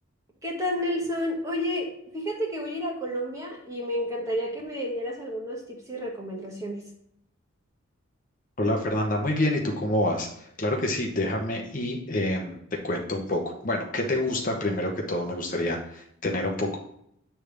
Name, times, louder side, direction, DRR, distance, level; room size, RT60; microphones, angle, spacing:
voice 1, 0.4-6.9, equal, 15° right, -1 dB, 1.4 m, -31 dB
voice 2, 8.6-12.6 12.8-16.8, left 1 dB, 40° left, 1 dB, 0.9 m, -27 dB
8.7 x 3.4 x 5.0 m, 0.72 s
head